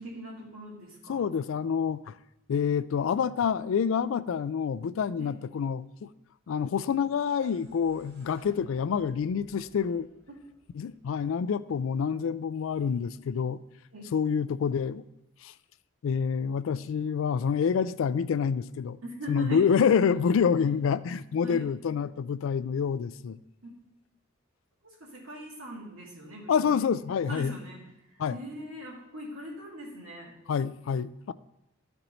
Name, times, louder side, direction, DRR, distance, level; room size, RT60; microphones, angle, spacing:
voice 1, 0.0-1.3 5.2-5.3 10.3-10.4 13.9-14.1 19.0-19.7 20.6-20.7 21.4-21.6 23.6-23.7 24.8-26.7 27.3-27.8 28.3-30.3, right 1 dB, 80° right, 2.6 m, -41 dB
voice 2, 1.1-2.1 2.5-6.1 6.5-10.1 10.7-13.6 14.1-15.0 15.4-15.5 16.0-19.0 19.3-23.4 26.5-27.6 28.2-28.4 30.5-31.3, left 6 dB, 70° left, 0.3 m, -27 dB
sound 1, 7.0-11.9, equal, 50° right, 3.5 m, -56 dB
13.0 x 4.4 x 3.9 m
head